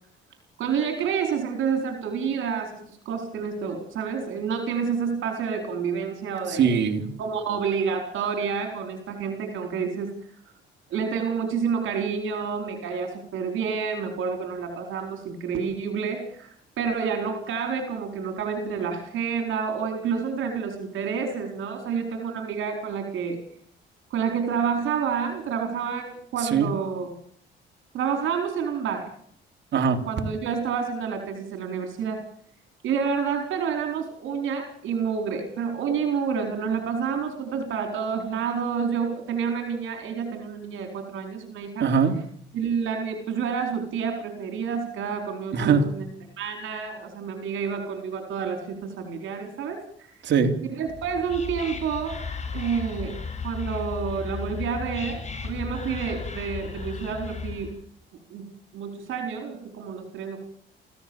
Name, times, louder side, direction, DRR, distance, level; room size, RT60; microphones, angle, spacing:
voice 1, 0.6-6.7 7.2-10.2 10.9-23.4 24.1-27.2 27.9-29.1 30.0-32.2 32.8-41.9 42.5-46.1 46.4-50.1 50.8-52.2 52.5-57.7 58.3-58.4 58.7-60.4, right 6 dB, 80° right, 4 dB, 4.4 m, -29 dB
voice 2, 6.5-7.0 26.4-26.7 29.7-30.0 41.8-42.2 45.5-45.8 50.2-50.5, right 6 dB, 65° right, 4 dB, 3.3 m, -21 dB
Whispering, 50.9-57.8, left 5 dB, 35° left, 7.4 m, -35 dB
28.0 x 16.0 x 7.2 m, 0.66 s
cardioid pair, 90°, 20 cm